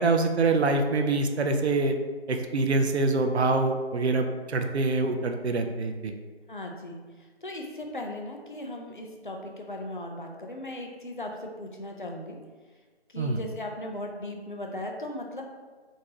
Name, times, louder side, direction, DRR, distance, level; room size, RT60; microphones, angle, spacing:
voice 1, 0.0-1.9 2.3-6.1 13.2-13.4, right 3 dB, 75° right, 5 dB, 0.5 m, -25 dB
voice 2, 6.5-7.0 7.4-12.4 13.1-15.4, left 1 dB, 50° left, 2 dB, 0.5 m, -37 dB
3.8 x 2.6 x 2.8 m, 1.4 s
figure-of-eight pair, 175°, 33 cm